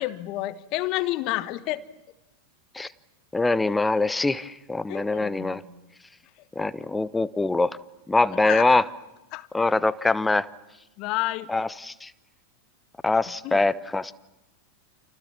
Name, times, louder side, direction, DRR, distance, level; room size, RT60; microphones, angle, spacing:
voice 1, 0.0-1.8 4.9-5.6 6.6-6.7 8.3-8.7 9.3-9.5 11.0-11.5 13.4-13.6, left 17 dB, 40° left, 13 dB, 1.4 m, -30 dB
voice 2, 3.3-5.6 6.6-7.8 8.1-8.8 9.5-10.5 11.5-12.1 13.0-14.1, left 2 dB, 10° left, 17 dB, 0.9 m, -23 dB
29.5 x 28.0 x 7.1 m, 1.0 s
figure-of-eight pair, 90°, 0 cm